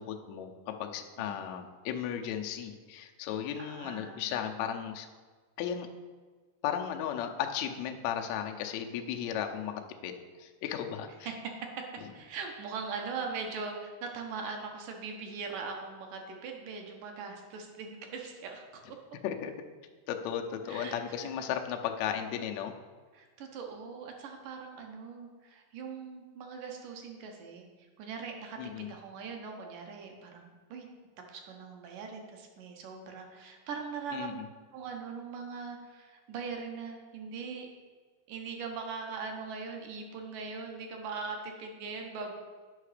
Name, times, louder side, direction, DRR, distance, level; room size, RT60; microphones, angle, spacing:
voice 1, 0.0-5.1 5.6-5.9 6.6-11.3 12.0-12.1 19.2-19.5 20.1-22.7 28.6-28.9 34.1-34.5, left 9 dB, 90° left, 4 dB, 1.5 m, -35 dB
voice 2, 1.2-1.6 3.6-4.6 11.2-11.9 12.1-18.8 20.7-21.3 23.1-27.7 28.0-30.9 31.3-34.4 34.7-37.7 38.3-42.3, right 5 dB, 70° right, 2 dB, 2.4 m, -41 dB
8.7 x 5.8 x 4.9 m, 1.5 s
omnidirectional pair, 4.0 m